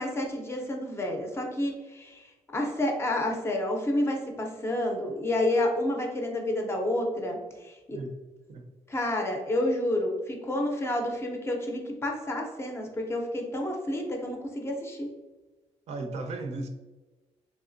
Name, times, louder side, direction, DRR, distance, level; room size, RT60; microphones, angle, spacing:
voice 1, 0.0-2.2 2.5-8.0 8.9-15.1, left 1 dB, 20° left, 1 dB, 0.5 m, -29 dB
voice 2, 15.9-16.7, right 2 dB, 60° right, 5 dB, 0.5 m, -35 dB
3.4 x 3.1 x 2.5 m, 1.2 s
wide cardioid pair, 170°, 13 cm